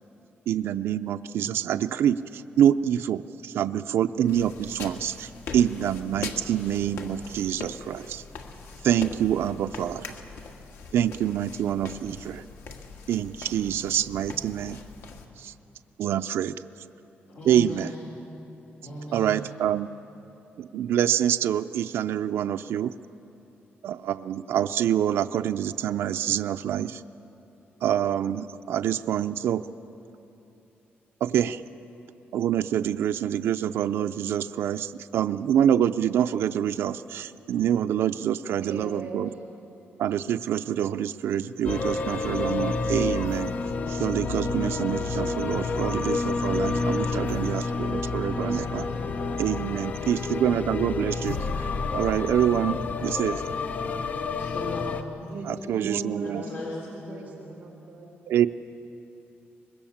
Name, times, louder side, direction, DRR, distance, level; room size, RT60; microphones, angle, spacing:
voice 1, 0.5-8.2 8.8-10.1 10.9-12.4 13.1-14.8 15.4-15.5 16.0-16.5 17.5-17.9 19.1-19.9 20.6-22.9 23.8-27.0 27.8-29.6 31.2-31.6 32.3-39.3 40.0-43.5 43.9-48.8 49.4-51.7 51.9-53.4 55.4-56.4 58.3-58.5, right 10 dB, 75° right, 8 dB, 0.4 m, -26 dB
sound 1, 4.3-15.3, left 4 dB, 80° left, 1.8 m, -41 dB
voice 2, 17.3-18.1 18.8-19.5 54.4-55.3 56.2-57.5, left 1 dB, 55° left, -4 dB, 3.8 m, -38 dB
voice 3, 38.4-39.2 46.1-46.5 48.9-49.6 55.3-56.5 56.8-58.1, right 3 dB, 45° right, 1 dB, 3.9 m, -39 dB
sound 2, 41.6-55.0, left 4 dB, 40° left, 0.7 m, -29 dB
24.5 x 21.0 x 7.2 m, 2.9 s
wide cardioid pair, 180°, 4 cm